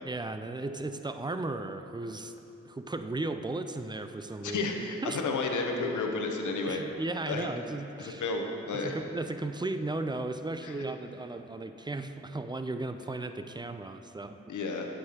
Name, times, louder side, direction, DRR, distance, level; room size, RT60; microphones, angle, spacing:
voice 1, 0.0-2.3 2.6-4.6 5.0-5.2 6.7-8.2 8.7-14.6, right 2 dB, 15° right, 9 dB, 0.4 m, -35 dB
voice 2, 4.4-6.8 7.3-7.5 8.0-9.0 10.6-10.7 14.5-14.9, left 3 dB, 90° left, 3 dB, 0.7 m, -32 dB
9.2 x 6.7 x 2.9 m, 2.9 s
cardioid pair, 45°, 30 cm